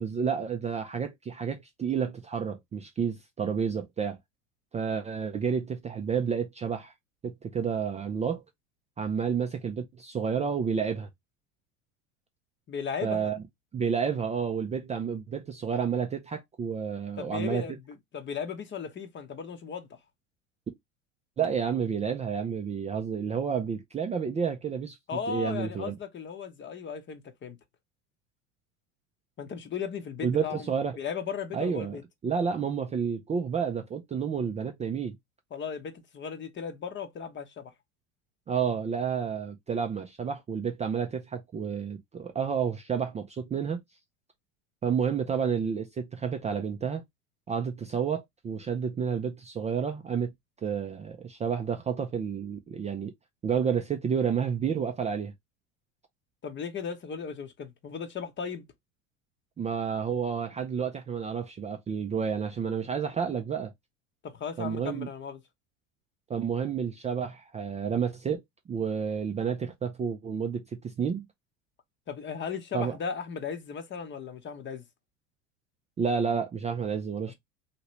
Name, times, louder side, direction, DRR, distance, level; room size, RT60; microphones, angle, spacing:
voice 1, 0.0-4.2 4.7-6.9 7.2-8.4 9.0-11.1 13.0-13.4 13.7-17.6 21.4-25.0 25.3-26.0 30.2-31.0 31.5-32.0 32.2-35.2 38.5-43.8 44.8-47.0 47.5-50.3 50.6-53.1 53.4-55.3 59.6-63.7 64.6-65.1 66.3-68.4 68.7-71.3 72.7-73.0 76.0-77.3, right 6 dB, 20° right, 0.4 m, -30 dB
voice 2, 12.7-13.3 17.2-20.0 25.1-27.6 29.4-30.7 31.0-32.0 35.5-37.7 56.4-58.6 64.2-65.4 72.1-74.8, left 6 dB, 30° left, 0.8 m, -36 dB
2.8 x 2.8 x 3.0 m
hypercardioid pair, 90°, 39 cm